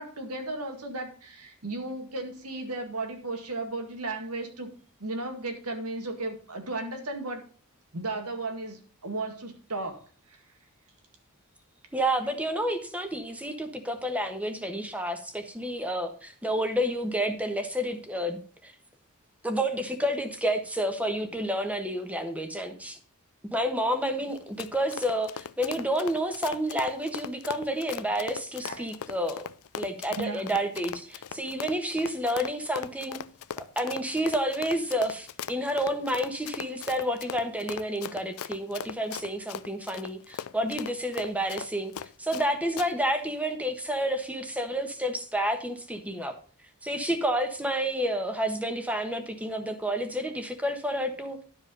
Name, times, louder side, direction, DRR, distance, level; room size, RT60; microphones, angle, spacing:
voice 1, 0.0-4.7 5.0-7.4 7.9-10.0 10.3-10.4 28.6-28.9 30.2-30.4, right 2 dB, 85° right, 2.0 m, -35 dB
voice 2, 11.9-18.7 19.4-23.0 23.4-29.5 29.8-33.2 33.8-41.9 42.2-46.4 46.8-51.4, equal, 5° right, 1.3 m, -30 dB
Run, 24.3-42.5 42.8-42.9, left 8 dB, 70° left, 0.4 m, -39 dB
12.0 x 5.0 x 5.3 m
head